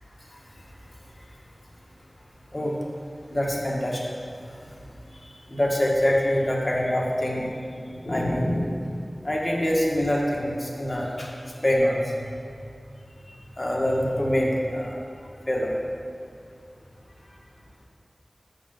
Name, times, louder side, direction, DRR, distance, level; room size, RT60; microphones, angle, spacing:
voice 1, 3.3-4.1 4.5-4.7 5.1-7.5 7.9-9.0 9.2-11.3 11.6-12.3 13.3-15.7, equal, 35° left, -3 dB, 1.7 m, -25 dB
7.6 x 5.3 x 6.6 m, 2.4 s
wide cardioid pair, 60°, 0 cm